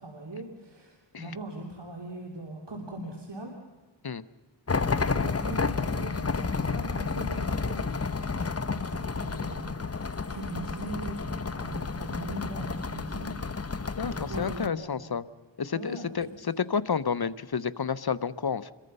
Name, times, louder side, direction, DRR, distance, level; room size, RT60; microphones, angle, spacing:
voice 1, 0.0-3.5 5.1-13.7 14.0-15.1 15.7-16.1, right 1 dB, 65° right, 1 dB, 3.1 m, -40 dB
sound 1, 4.7-14.7, left 4 dB, 30° left, 0.9 m, -31 dB
sound 2, 5.1-12.6, right 3 dB, 40° right, 2.5 m, -57 dB
voice 2, 14.0-15.2 15.6-18.7, left 6 dB, 55° left, 15 dB, 0.9 m, -30 dB
27.5 x 22.5 x 5.5 m, 1.3 s
wide cardioid pair, 45°, 45 cm